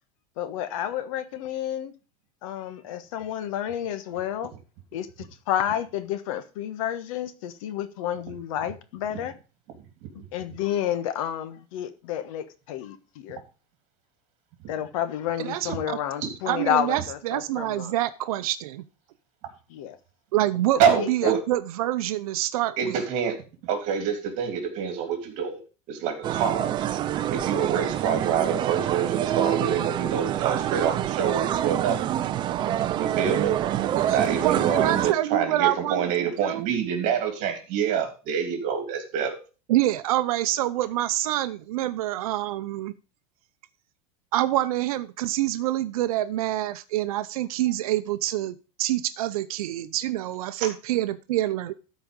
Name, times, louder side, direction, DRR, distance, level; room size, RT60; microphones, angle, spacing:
voice 1, 0.4-1.9 2.4-4.5 4.9-9.3 10.3-13.4 14.7-17.9 19.7-20.0 20.9-21.3, left 10 dB, 65° left, 1.2 m, -30 dB
voice 2, 15.4-16.0 16.5-18.8 20.3-23.0 34.0-34.2 34.4-36.7 39.7-42.9 44.3-51.7, right 14 dB, 75° right, 0.7 m, -26 dB
voice 3, 20.8-21.4 22.8-23.3 23.6-25.6 25.9-26.7 27.3-32.0 32.9-33.6 34.1-39.4, right 7 dB, 45° right, 3.0 m, -26 dB
sound 1, 26.2-35.1, right 11 dB, 25° right, 0.5 m, -26 dB
12.5 x 4.9 x 5.2 m
supercardioid pair, 160°, 19 cm